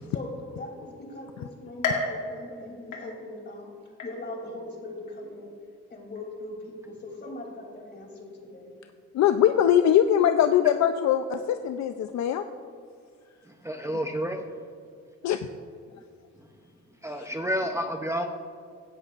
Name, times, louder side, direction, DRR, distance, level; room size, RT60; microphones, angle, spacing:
voice 1, 0.1-3.7 4.0-5.5 5.9-8.8, left 1 dB, 35° left, 1 dB, 2.9 m, -40 dB
sound 1, 1.8-3.5 4.0-4.6 5.1-5.2 6.1-6.2, left 3 dB, 80° left, 2.1 m, -33 dB
voice 2, 9.1-12.4 15.2-15.5 17.2-17.3, left 10 dB, 65° left, 8 dB, 0.5 m, -22 dB
voice 3, 13.6-14.4 17.0-18.3, equal, 10° right, 4 dB, 0.6 m, -29 dB
16.5 x 10.5 x 2.5 m, 2.2 s
cardioid pair, 90°, 30 cm